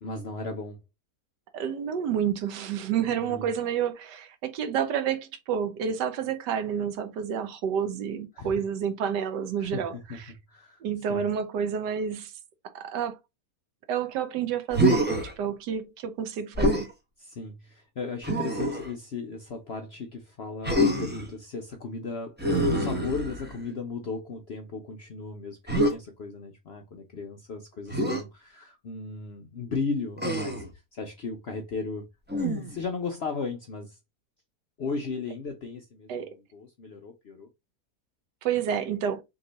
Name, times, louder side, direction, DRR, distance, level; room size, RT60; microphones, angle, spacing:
voice 1, 0.0-0.8 3.0-3.5 8.3-8.6 9.6-10.2 10.5-10.8 11.1-11.2 17.2-30.6 30.9-32.1 32.7-34.0 34.8-37.5, left 4 dB, 60° left, 0.6 m, -36 dB
voice 2, 1.5-9.9 10.8-12.3 12.7-13.2 13.9-15.1 15.4-16.9 36.1-36.3 38.4-39.2, right 8 dB, 85° right, 1.4 m, -29 dB
Human voice, 14.7-15.3 16.5-16.9 18.2-18.9 20.6-21.3 22.4-23.6 25.7-25.9 27.9-28.2 30.2-30.7 32.3-32.8, equal, 10° right, 0.5 m, -25 dB
3.7 x 3.1 x 4.0 m
omnidirectional pair, 1.8 m